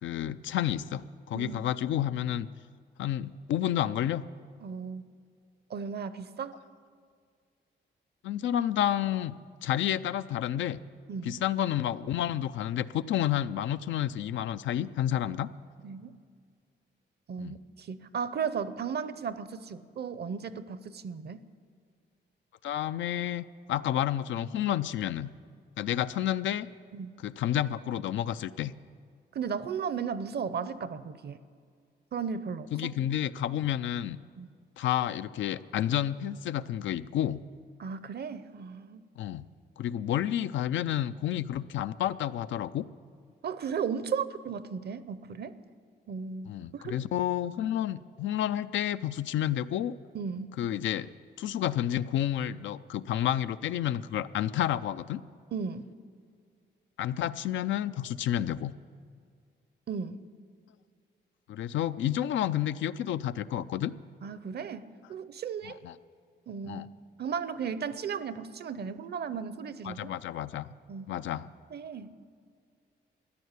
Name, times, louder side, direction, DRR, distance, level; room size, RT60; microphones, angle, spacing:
voice 1, 0.0-2.5 3.0-4.3 8.2-9.4 9.6-10.8 11.2-15.5 17.4-17.6 22.6-25.3 25.8-26.7 27.2-28.7 32.7-34.2 34.8-37.4 39.2-39.5 39.8-42.9 46.5-50.0 50.6-51.1 51.4-55.2 57.0-58.7 61.5-63.9 65.6-66.0 66.6-66.8 69.8-70.7 71.1-71.5, left 11 dB, 90° left, 13 dB, 0.4 m, -30 dB
voice 2, 4.6-5.0 5.7-6.5 11.1-11.3 15.8-16.1 17.3-21.4 26.9-27.1 29.3-31.4 32.1-32.9 34.4-34.5 37.8-39.0 43.4-45.6 46.1-47.0 50.1-50.5 55.5-55.9 59.9-60.3 64.2-65.8 66.5-66.9 67.2-70.1 70.9-71.1 71.7-72.1, right 6 dB, 60° right, 14 dB, 0.7 m, -35 dB
14.0 x 10.0 x 8.2 m, 2.1 s
cardioid pair, 90°, 19 cm